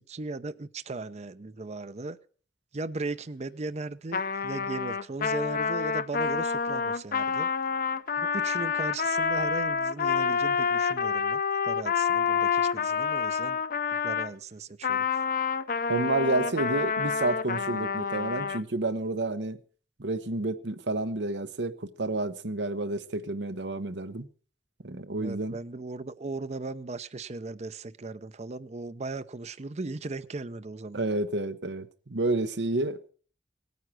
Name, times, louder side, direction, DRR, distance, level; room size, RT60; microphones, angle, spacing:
voice 1, 0.0-2.2 2.7-7.5 8.2-13.6 14.0-15.1 25.2-31.0, right 3 dB, 40° right, 0.6 m, -37 dB
Trumpet, 4.1-14.3 14.8-18.6, left 6 dB, 50° left, 0.6 m, -28 dB
voice 2, 15.9-19.6 20.0-24.3 24.8-25.6 30.9-33.1, right 2 dB, 80° right, 1.1 m, -30 dB
18.0 x 9.4 x 6.2 m
head